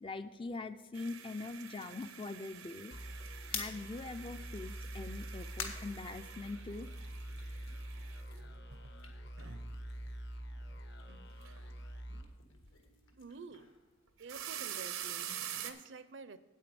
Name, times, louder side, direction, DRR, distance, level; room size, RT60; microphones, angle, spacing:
voice 1, 0.0-2.9 3.5-6.9, left 3 dB, 25° left, 10 dB, 0.4 m, -43 dB
sound 1, 0.9-9.9 10.3-10.8 11.1-11.6 11.9-12.0 14.1-15.7, right 9 dB, 90° right, 1.0 m, -47 dB
sound 2, 2.9-13.2, right 1 dB, 55° left, 0.9 m, -46 dB
sound 3, 3.5-6.9 7.2-10.2 10.5-14.6, left 6 dB, 80° left, 1.5 m, -49 dB
voice 2, 13.2-13.7 14.2-16.4, right 4 dB, 60° right, 13 dB, 0.6 m, -49 dB
9.1 x 8.5 x 5.1 m, 1.3 s
head